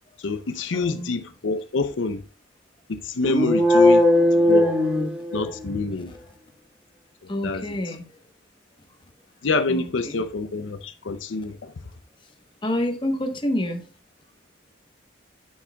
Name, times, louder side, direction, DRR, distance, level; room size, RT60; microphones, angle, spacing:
voice 1, 0.2-2.2 2.9-4.1 4.4-4.7 5.3-6.1 7.2-7.6 9.4-11.7, left 3 dB, 70° left, 0.6 m, -26 dB
voice 2, 0.7-1.1 5.9-6.2 7.3-8.1 9.7-10.2 12.6-13.9, left 1 dB, 25° left, 1.0 m, -28 dB
sound 1, 3.2-5.8, left 1 dB, 5° right, 1.6 m, -18 dB
8.7 x 8.1 x 2.3 m
head